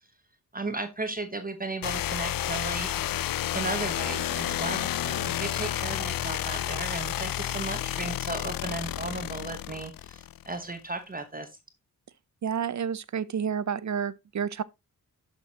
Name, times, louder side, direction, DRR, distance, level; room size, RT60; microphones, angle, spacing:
voice 1, 0.5-2.9 3.5-11.5, right 3 dB, 25° right, 1.0 m, -35 dB
sound 1, 1.8-10.6, left 12 dB, 90° left, 0.5 m, -31 dB
voice 2, 12.4-14.6, right 7 dB, 60° right, 0.6 m, -30 dB
11.5 x 6.1 x 2.9 m
wide cardioid pair, 125°, 33 cm